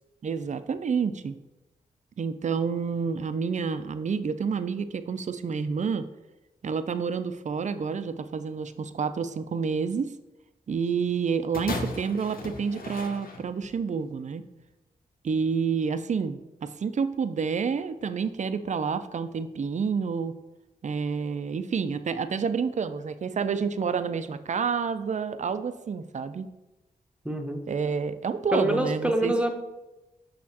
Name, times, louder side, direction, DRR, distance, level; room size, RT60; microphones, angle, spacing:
voice 1, 0.2-1.3 2.2-6.1 6.6-10.1 10.7-14.4 15.2-20.4 20.8-26.5 27.7-29.3, right 5 dB, 45° right, 11 dB, 0.5 m, -29 dB
sound 1, 11.5-13.8 14.6-14.7, left 3 dB, 65° left, 0.9 m, -36 dB
voice 2, 27.2-27.6 28.5-29.5, right 1 dB, 5° right, 4 dB, 0.9 m, -25 dB
6.3 x 5.5 x 2.9 m, 1.0 s
cardioid pair, 50°, 16 cm